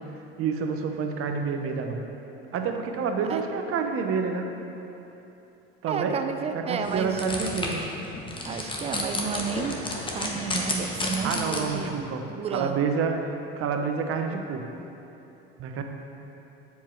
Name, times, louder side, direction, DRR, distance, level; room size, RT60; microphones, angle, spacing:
voice 1, 0.4-2.0 2.5-4.5 5.8-6.2 6.5-7.8 11.2-12.3 12.5-14.7 15.6-15.8, right 5 dB, 45° right, 4 dB, 0.8 m, -28 dB
voice 2, 5.9-7.3 8.5-9.8 10.1-12.0 12.3-12.8, right 6 dB, 20° right, 7 dB, 0.4 m, -31 dB
sound 1, 6.8-11.9, left 1 dB, 15° left, 1.0 m, -32 dB
7.3 x 4.5 x 4.5 m, 2.9 s
hypercardioid pair, 90°, 32 cm